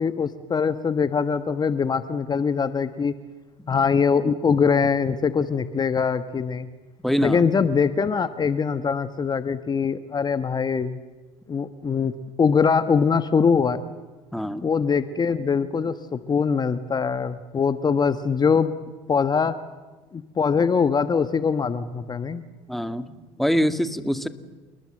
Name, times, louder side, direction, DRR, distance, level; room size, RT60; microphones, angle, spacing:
voice 1, 0.0-3.1 3.7-6.7 7.2-11.0 11.5-12.1 12.4-13.8 14.6-18.7 19.1-19.5 20.1-22.4, left 6 dB, 30° left, 11 dB, 1.3 m, -22 dB
voice 2, 7.0-7.4 14.3-14.7 22.7-24.3, equal, ahead, 10 dB, 1.8 m, -25 dB
29.0 x 20.0 x 7.7 m, 1.2 s
hypercardioid pair, 75°, 14 cm